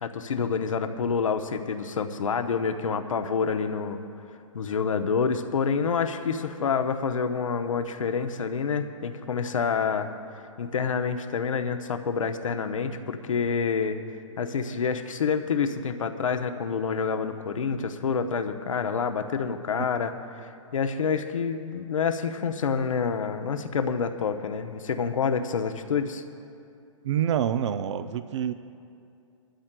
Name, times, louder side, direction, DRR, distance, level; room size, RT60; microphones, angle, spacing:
voice 1, 0.0-4.0 4.5-10.1 10.6-14.0 14.4-26.2, left 6 dB, 75° left, 7 dB, 0.9 m, -28 dB
voice 2, 27.0-28.5, right 9 dB, 60° right, 11 dB, 0.5 m, -27 dB
21.5 x 12.5 x 2.2 m, 2.5 s
hypercardioid pair, 135°, 17 cm